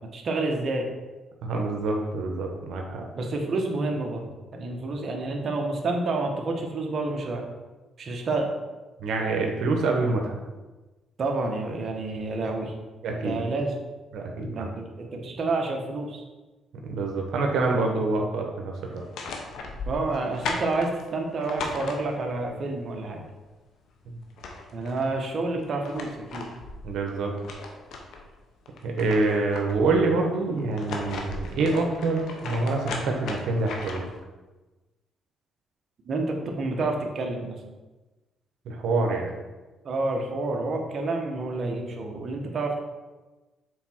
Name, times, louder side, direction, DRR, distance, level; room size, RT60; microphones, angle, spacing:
voice 1, 0.1-0.9 3.1-4.3 4.5-7.4 8.0-8.5 11.2-12.7 13.2-13.7 14.5-16.2 19.8-23.2 24.7-26.5 36.0-37.6 39.8-42.8, right 2 dB, 50° right, 1 dB, 1.4 m, -29 dB
voice 2, 1.4-3.0 9.0-10.3 13.0-13.4 14.1-14.7 16.8-19.0 26.8-27.3 28.8-34.1 38.7-39.3, right 3 dB, 75° right, 2 dB, 1.2 m, -26 dB
sound 1, 18.9-22.5 23.9-24.0 24.2-25.1 25.6-28.3 28.7-30.0 30.6-34.2, left 3 dB, 75° left, 1.0 m, -37 dB
7.0 x 4.1 x 4.6 m, 1.2 s
cardioid pair, 90°, 0 cm